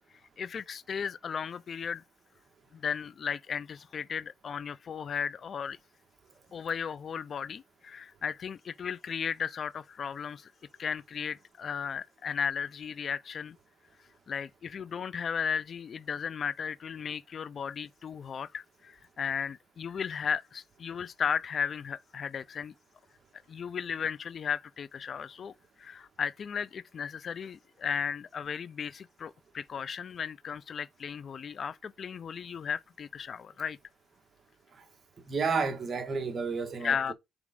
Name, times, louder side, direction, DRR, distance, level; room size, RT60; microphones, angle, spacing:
voice 1, 0.4-2.0 2.7-5.8 6.5-10.5 10.8-13.6 14.3-22.7 23.5-25.5 25.8-33.8 36.8-37.1, left 7 dB, 50° left, 0.4 m, -35 dB
voice 2, 35.3-37.1, right 4 dB, 40° right, 1.7 m, -31 dB
5.2 x 4.7 x 5.0 m
cardioid pair, 90°, 0 cm